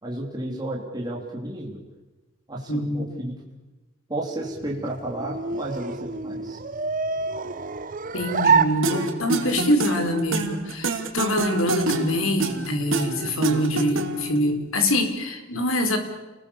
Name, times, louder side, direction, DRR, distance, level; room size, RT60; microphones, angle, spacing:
voice 1, 0.0-1.8 2.5-3.4 4.1-6.6, right 1 dB, 20° right, -2 dB, 3.2 m, -32 dB
voice 2, 2.7-3.2 8.1-16.0, left 1 dB, 80° left, 6 dB, 4.2 m, -24 dB
sound 1, 4.5-9.5, right 5 dB, 40° right, 0.9 m, -26 dB
sound 2, 8.8-14.4, right 3 dB, 70° right, 3.0 m, -27 dB
30.0 x 21.0 x 7.1 m, 1.1 s
head